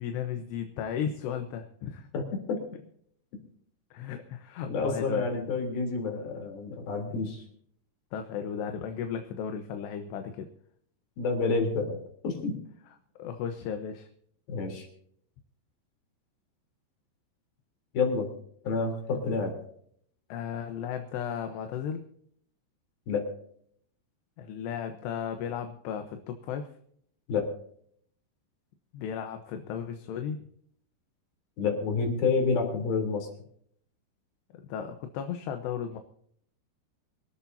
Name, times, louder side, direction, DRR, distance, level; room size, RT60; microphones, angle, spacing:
voice 1, 0.0-2.1 3.9-5.4 8.1-10.5 12.9-14.1 20.3-22.0 24.4-26.7 28.9-30.4 34.5-36.0, left 8 dB, 75° left, 6 dB, 3.1 m, -35 dB
voice 2, 2.1-2.6 4.7-7.4 11.2-12.0 12.2-12.6 14.5-14.9 17.9-18.3 18.6-19.5 23.1-23.3 27.3-27.5 31.6-33.3, left 4 dB, 55° left, 3 dB, 5.2 m, -29 dB
25.0 x 13.0 x 2.8 m, 0.64 s
omnidirectional pair, 5.2 m